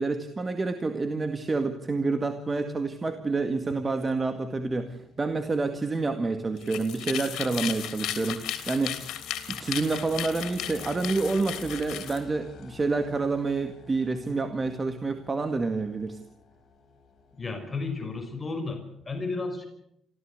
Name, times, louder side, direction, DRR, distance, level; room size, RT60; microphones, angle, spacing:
voice 1, 0.0-9.0 9.5-16.2, right 3 dB, 30° right, 8 dB, 2.0 m, -28 dB
sound 1, 3.0-18.4, left 5 dB, 65° left, 4.8 m, -51 dB
sound 2, 6.6-12.2, left 11 dB, 85° left, 3.3 m, -35 dB
voice 2, 17.4-19.7, left 3 dB, 25° left, 5 dB, 5.6 m, -33 dB
26.5 x 16.0 x 8.2 m, 0.75 s
cardioid pair, 90°, 0 cm